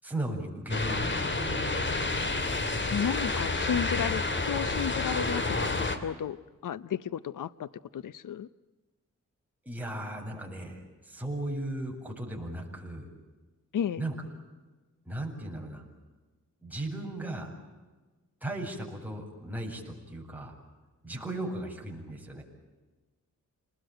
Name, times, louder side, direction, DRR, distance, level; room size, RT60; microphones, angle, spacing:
voice 1, 0.0-1.9 9.6-13.1 14.0-14.1 15.0-15.8 16.6-17.5 18.4-20.6 21.0-22.4, right 1 dB, 5° right, 0 dB, 7.9 m, -36 dB
sound 1, 0.7-6.0, left 3 dB, 35° left, 3.1 m, -29 dB
voice 2, 2.9-8.5 13.7-14.0, left 8 dB, 75° left, 17 dB, 0.8 m, -33 dB
28.5 x 21.0 x 9.2 m, 1.2 s
cardioid pair, 75°, 32 cm